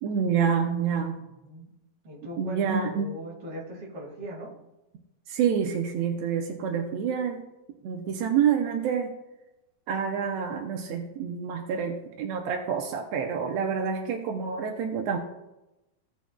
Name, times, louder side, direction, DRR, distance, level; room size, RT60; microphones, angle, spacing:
voice 1, 0.0-1.1 2.4-3.1 5.3-7.4 7.8-9.1 9.9-15.2, right 7 dB, 75° right, 2 dB, 1.6 m, -27 dB
voice 2, 1.2-1.7 2.0-4.5, right 1 dB, 45° right, -3 dB, 2.9 m, -40 dB
16.0 x 6.3 x 2.3 m, 0.96 s
omnidirectional pair, 3.8 m